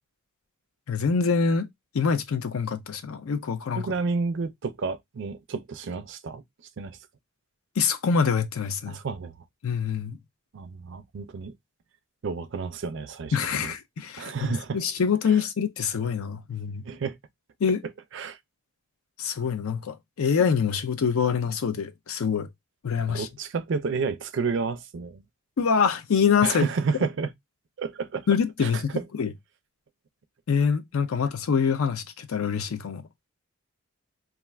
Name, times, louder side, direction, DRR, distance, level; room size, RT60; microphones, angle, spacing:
voice 1, 0.9-1.7 1.9-3.8 7.8-9.0 9.6-10.2 13.3-16.8 17.6-17.8 19.2-22.5 22.8-23.3 25.6-26.6 28.3-28.9 29.2-29.3 30.5-33.0, left 6 dB, 75° left, 0.4 m, -25 dB
voice 2, 3.7-6.4 6.8-6.9 8.9-9.3 10.5-11.5 12.2-13.7 14.2-14.8 15.3-15.4 16.8-17.2 18.1-18.4 23.1-25.2 26.4-27.3 27.8-28.3 28.6-28.8, right 4 dB, 55° right, 0.4 m, -30 dB
2.4 x 2.3 x 3.1 m
head